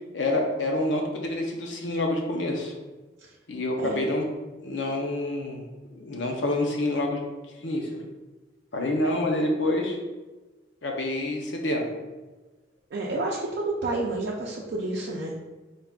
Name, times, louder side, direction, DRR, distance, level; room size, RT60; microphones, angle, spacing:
voice 1, 0.1-2.7 3.5-4.3 4.6-5.6 5.9-7.2 7.6-8.0 8.7-10.0 10.8-11.9, left 1 dB, 75° left, 1 dB, 0.7 m, -27 dB
voice 2, 12.9-15.3, right 2 dB, 60° right, -3 dB, 0.5 m, -29 dB
4.0 x 3.6 x 2.4 m, 1.2 s
head